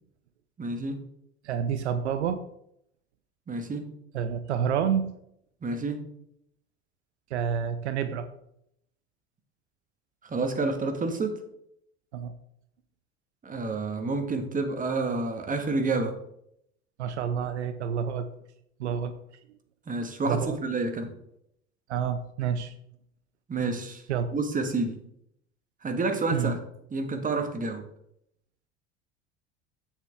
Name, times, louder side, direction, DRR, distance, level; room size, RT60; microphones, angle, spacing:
voice 1, 0.6-1.0 3.5-3.9 5.6-6.0 10.2-11.4 13.4-16.1 19.9-21.1 23.5-24.0 24.3-25.0 25.8-26.6 26.9-27.8, right 3 dB, 25° right, 5 dB, 1.7 m, -29 dB
voice 2, 1.4-2.4 4.1-5.1 7.3-8.3 12.1-12.3 17.0-18.3 18.8-19.2 20.3-20.6 21.9-22.7 24.1-24.3 26.3-26.5, right 8 dB, 75° right, 10 dB, 0.7 m, -28 dB
8.1 x 7.2 x 3.6 m, 0.74 s
figure-of-eight pair, 70°, 34 cm